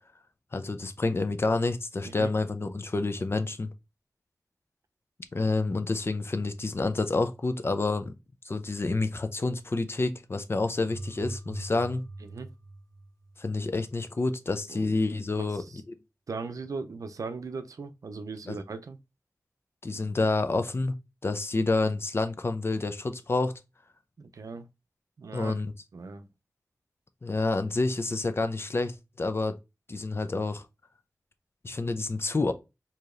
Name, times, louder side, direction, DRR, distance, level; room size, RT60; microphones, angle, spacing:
voice 1, 0.5-3.7 5.3-8.1 8.4-12.1 13.4-16.0 18.5-18.6 19.8-21.0 21.2-23.5 25.3-25.7 27.2-29.6 29.9-30.6 31.6-32.5, left 3 dB, 45° left, 0.5 m, -28 dB
sound 1, 10.7-13.6, right 2 dB, 85° left, 1.0 m, -42 dB
voice 2, 14.7-15.0 15.4-15.8 16.3-19.0 24.2-24.7 25.2-25.6 25.9-26.3, right 4 dB, 80° right, 0.5 m, -38 dB
4.7 x 2.8 x 2.5 m
wide cardioid pair, 60°, 6 cm